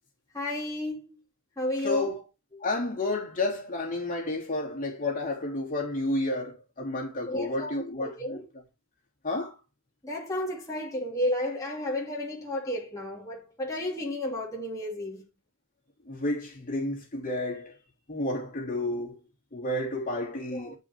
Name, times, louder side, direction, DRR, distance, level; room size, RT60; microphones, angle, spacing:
voice 1, 0.3-1.2 1.6-2.1 2.5-2.6 7.3-8.4 10.0-15.2 20.5-20.7, left 1 dB, 15° left, 2.9 m, -32 dB
voice 2, 1.8-2.2 2.6-8.4 9.2-9.5 16.1-17.7 18.1-19.2 19.5-20.8, left 2 dB, 40° left, 3.1 m, -31 dB
10.0 x 5.6 x 4.5 m
head